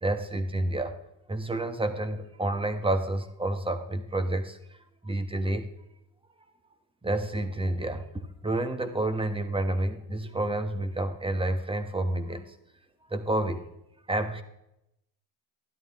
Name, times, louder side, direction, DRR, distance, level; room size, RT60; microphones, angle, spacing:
voice 1, 0.0-1.0 1.3-4.6 5.0-5.7 7.0-12.6 13.1-13.7 14.1-14.4, right 1 dB, 10° right, 9 dB, 1.3 m, -29 dB
12.5 x 11.5 x 3.7 m, 0.82 s
cardioid pair, 105°, 45 cm